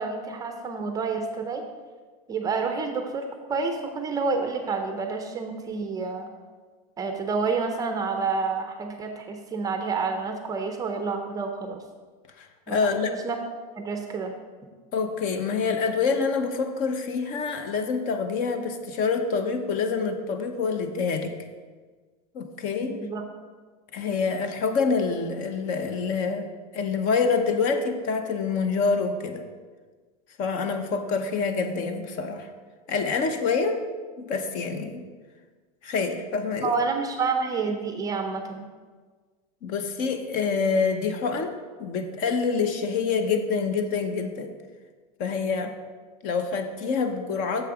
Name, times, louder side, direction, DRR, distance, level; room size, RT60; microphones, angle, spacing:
voice 1, 0.0-1.6 2.3-3.2 3.5-6.3 7.0-11.8 12.7-12.8 13.1-13.4 13.8-14.3 23.0-23.2 36.6-38.6, right 4 dB, 20° right, 5 dB, 0.5 m, -29 dB
voice 2, 12.4-13.1 14.9-21.3 22.3-23.0 23.9-26.5 26.7-29.5 30.4-32.5 32.9-33.9 34.2-35.0 35.8-36.7 39.6-41.5 41.8-44.5 45.2-45.7 46.2-47.7, left 5 dB, 40° left, 7 dB, 0.8 m, -26 dB
7.1 x 6.5 x 4.9 m, 1.4 s
supercardioid pair, 155°, 20 cm